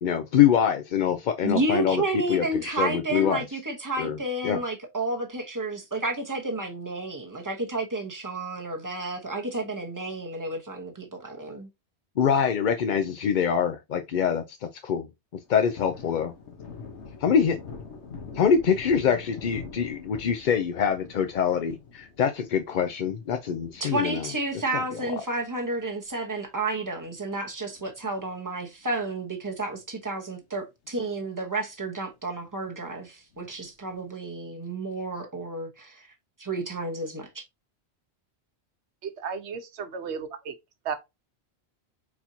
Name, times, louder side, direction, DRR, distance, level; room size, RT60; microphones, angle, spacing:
voice 1, 0.0-3.4 4.0-4.2 4.4-4.6 12.2-16.3 17.2-17.6 18.3-24.3 24.7-25.0, left 7 dB, 55° left, 0.6 m, -25 dB
voice 2, 1.4-11.7 23.8-36.1 36.4-37.4, right 2 dB, 20° right, 0.9 m, -31 dB
Thunder, 15.3-26.1 26.4-26.5 26.9-28.4 28.7-28.8 29.2-30.0 30.4-30.5 30.8-30.9 33.3-33.9, left 5 dB, 85° left, 1.4 m, -45 dB
voice 3, 39.0-40.5 40.8-41.0, right 6 dB, 80° right, 1.1 m, -34 dB
4.3 x 4.1 x 2.6 m
omnidirectional pair, 1.1 m